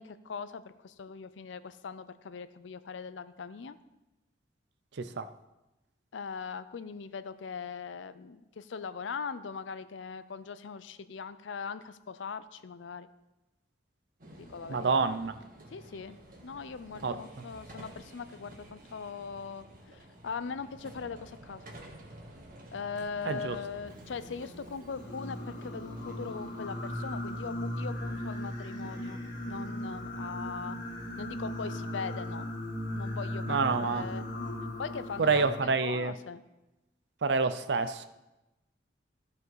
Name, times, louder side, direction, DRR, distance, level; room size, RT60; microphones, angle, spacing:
voice 1, 0.0-3.8 6.1-13.1 14.4-15.1 15.7-19.7 19.9-21.6 22.7-29.2 29.5-30.8 31.2-32.5 32.9-34.2 34.8-36.4, left 5 dB, 90° left, 13 dB, 0.5 m, -40 dB
sound 1, 14.2-31.8, right 1 dB, 50° right, 1.7 m, -52 dB
voice 2, 14.7-15.4 17.0-17.2 23.3-23.6 33.5-34.0 35.2-36.1 37.2-38.1, right 4 dB, 65° right, 12 dB, 0.5 m, -27 dB
Singing, 24.9-35.6, left 1 dB, 45° left, 2.1 m, -37 dB
14.5 x 5.2 x 4.7 m, 1.0 s
head